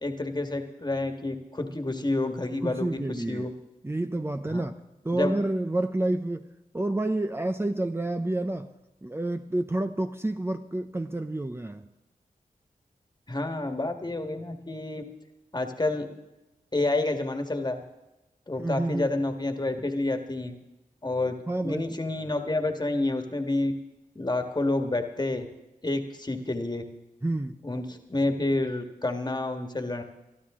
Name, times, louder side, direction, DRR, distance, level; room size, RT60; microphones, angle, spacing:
voice 1, 0.0-3.5 4.5-4.6 5.1-5.3 13.3-15.0 15.5-16.1 16.7-17.8 18.5-20.6 21.0-21.4 21.6-23.7 24.2-25.5 25.8-26.8 27.6-30.0, left 2 dB, 30° left, 6 dB, 1.7 m, -29 dB
voice 2, 2.6-3.5 3.8-4.8 5.0-6.5 6.7-8.7 9.0-11.9 18.6-19.1 21.5-22.0 27.2-27.6, right 2 dB, 15° right, 7 dB, 0.7 m, -29 dB
22.5 x 12.5 x 3.8 m, 1.0 s
cardioid pair, 55°, 15 cm